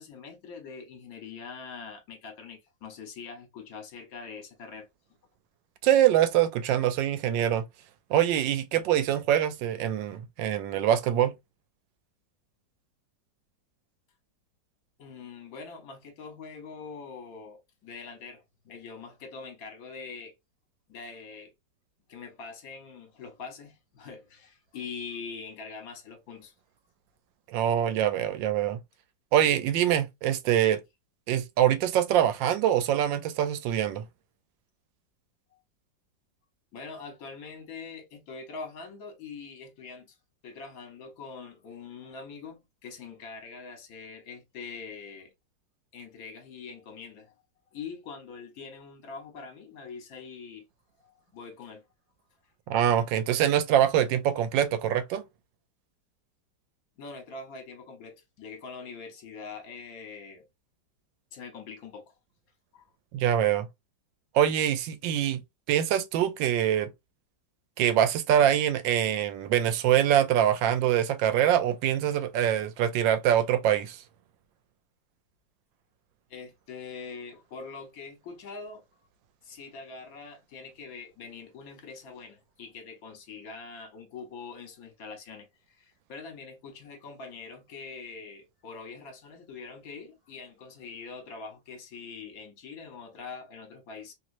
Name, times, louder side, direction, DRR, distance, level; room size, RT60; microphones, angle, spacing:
voice 1, 0.0-4.9 15.0-20.3 20.9-21.5 22.1-26.5 36.7-40.2 40.4-45.3 45.9-47.3 47.7-50.7 51.0-51.8 57.0-60.5 61.3-62.1 62.7-62.9 76.3-78.8 79.4-94.1, left 5 dB, 55° left, 1.4 m, -43 dB
voice 2, 5.8-7.6 8.1-11.3 27.5-28.8 29.3-30.8 31.3-34.0 52.7-55.2 63.1-63.7 64.3-65.4 65.7-66.9 67.8-74.0, right 10 dB, 90° right, 1.3 m, -24 dB
3.1 x 3.0 x 2.5 m
omnidirectional pair, 2.0 m